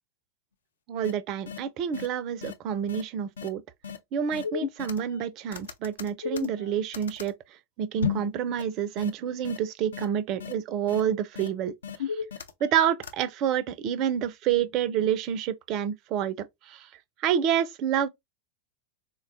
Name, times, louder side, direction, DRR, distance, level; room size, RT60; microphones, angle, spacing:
voice 1, 0.9-3.6 4.1-7.3 7.8-11.7 12.6-16.9 17.2-18.1, right 9 dB, 40° right, 0.3 m, -28 dB
sound 1, 1.0-1.1 1.5-1.6 1.9-2.1 2.4-2.5 2.9-3.0 3.4-3.5 3.8-4.0 4.3-5.2 5.5-7.3 8.0-8.3 8.6-8.7 9.0-9.1 9.4-9.6 9.9-10.1 10.4-10.5 10.9-11.0 11.4-11.5 11.8-12.7 13.0-13.1, left 7 dB, 65° left, 0.4 m, -33 dB
3.8 x 2.2 x 2.4 m
figure-of-eight pair, 90°, 0 cm